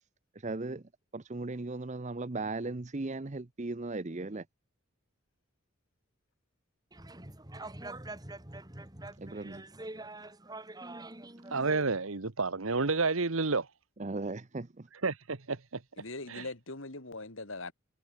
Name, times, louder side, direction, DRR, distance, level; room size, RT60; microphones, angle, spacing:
voice 1, 0.4-4.4 9.2-9.6 14.0-14.9, right 2 dB, 35° right, 0.7 m, -37 dB
sound 1, 6.9-11.8, right 2 dB, 20° right, 2.1 m, -45 dB
voice 2, 11.5-13.7 15.0-15.8 16.3-16.4, right 4 dB, 75° right, 1.3 m, -30 dB
voice 3, 16.0-17.7, left 2 dB, 65° left, 2.6 m, -41 dB
head